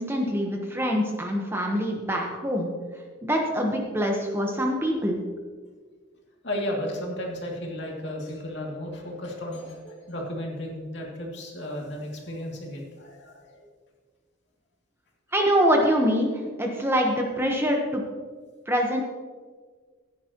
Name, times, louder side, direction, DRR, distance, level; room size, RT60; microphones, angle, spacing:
voice 1, 0.0-2.7 3.2-5.2 15.3-18.0 18.7-19.0, equal, 10° right, 1 dB, 1.1 m, -24 dB
voice 2, 6.4-13.7, left 1 dB, 60° left, -1 dB, 2.4 m, -34 dB
15.0 x 10.0 x 3.0 m, 1.5 s
head